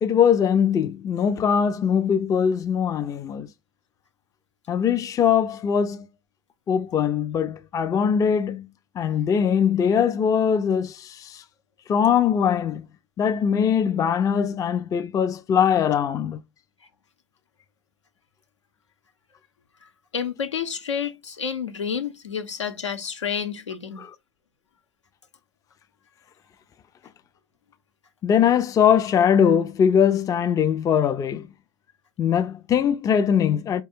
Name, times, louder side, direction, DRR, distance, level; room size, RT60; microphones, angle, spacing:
voice 1, 0.0-3.5 4.7-6.1 6.7-8.7 9.0-11.4 11.9-12.8 13.2-16.4 24.0-24.1 28.2-31.5 32.2-33.8, left 8 dB, 25° left, 0.5 m, -21 dB
voice 2, 20.1-24.0, left 7 dB, 80° left, 0.9 m, -29 dB
4.7 x 2.3 x 4.3 m
figure-of-eight pair, 90°, 15 cm